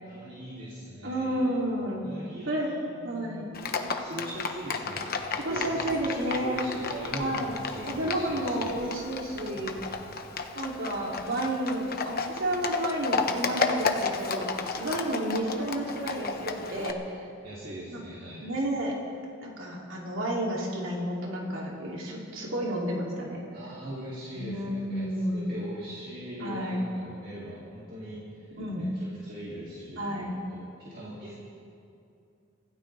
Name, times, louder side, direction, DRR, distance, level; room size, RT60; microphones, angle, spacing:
voice 1, 0.0-1.7 2.0-8.8 9.5-10.2 17.4-18.5 23.5-31.3, equal, 50° right, -7 dB, 2.7 m, -41 dB
voice 2, 1.0-2.0 2.5-2.7 3.0-3.5 5.4-6.6 7.2-7.5 7.9-9.7 10.5-17.3 17.9-18.0 18.4-18.9 19.4-23.5 24.3-25.6 26.4-26.8 28.5-28.9 30.0-30.3, right 1 dB, 85° right, -3 dB, 2.9 m, -31 dB
Livestock farm animals working animals, 3.5-16.9, left 4 dB, 50° left, 1.1 m, -33 dB
26.0 x 16.0 x 3.4 m, 2.5 s
head